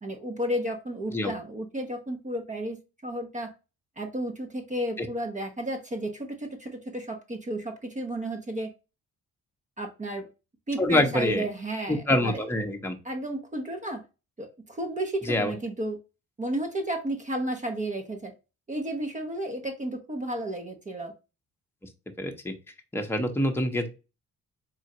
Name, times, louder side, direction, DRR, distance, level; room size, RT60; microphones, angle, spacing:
voice 1, 0.0-2.8 3.0-3.5 4.0-8.7 9.8-10.3 10.7-12.4 13.0-14.0 14.4-16.0 16.4-18.3 18.7-21.1, right 1 dB, 25° right, 4 dB, 0.8 m, -32 dB
voice 2, 10.8-11.4 11.9-13.0 15.3-15.5 22.2-22.5 22.9-23.9, left 1 dB, 10° left, 3 dB, 0.8 m, -25 dB
3.8 x 2.4 x 4.2 m, 0.29 s
cardioid pair, 90°, 30 cm